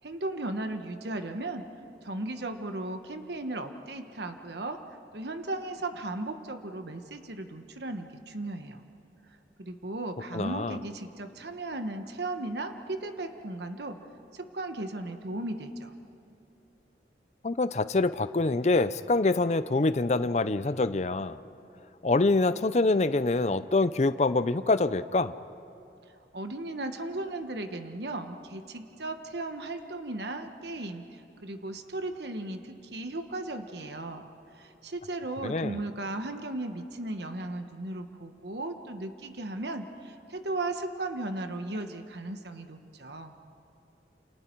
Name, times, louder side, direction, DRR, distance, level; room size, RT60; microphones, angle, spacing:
voice 1, 0.0-1.6 2.0-8.8 9.3-14.0 14.3-15.9 26.3-34.3 34.5-43.3, right 2 dB, 70° right, 6 dB, 1.2 m, -36 dB
voice 2, 10.3-10.8 17.4-21.4 22.0-25.3 35.4-35.8, left 3 dB, 40° left, 13 dB, 0.5 m, -25 dB
29.0 x 28.5 x 4.6 m, 2.6 s
head